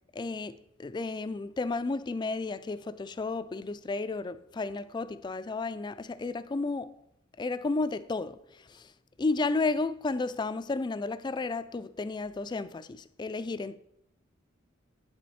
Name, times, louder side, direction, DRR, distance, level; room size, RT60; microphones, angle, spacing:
voice 1, 0.1-0.5 0.8-6.9 7.4-8.9 9.2-13.8, left 3 dB, 20° left, 0.3 m, -32 dB
8.6 x 6.2 x 4.2 m
head